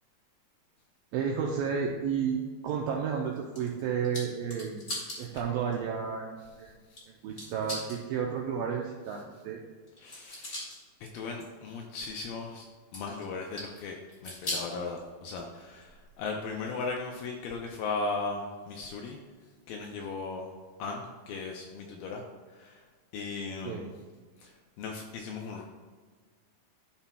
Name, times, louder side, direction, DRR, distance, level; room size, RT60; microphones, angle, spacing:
voice 1, 1.1-2.4 2.6-4.8 5.2-6.7 7.2-9.6 23.6-23.9, right 7 dB, 85° right, -1 dB, 2.0 m, -32 dB
sound 1, 3.3-5.2 5.7-5.8 7.0-7.1 7.4-8.0 9.9-10.8 11.3-11.5 12.9-13.8 14.1-14.7 15.3-16.2 16.6-16.7 17.7-17.8, left 1 dB, 35° left, 1.0 m, -39 dB
voice 2, 10.0-10.6 11.1-12.7 12.9-19.2 19.7-20.5 20.8-22.2 22.5-22.8 23.1-23.9 24.4-24.5 24.8-25.6, left 4 dB, 80° left, 1 dB, 2.1 m, -37 dB
13.0 x 5.5 x 2.3 m, 1.5 s
omnidirectional pair, 4.8 m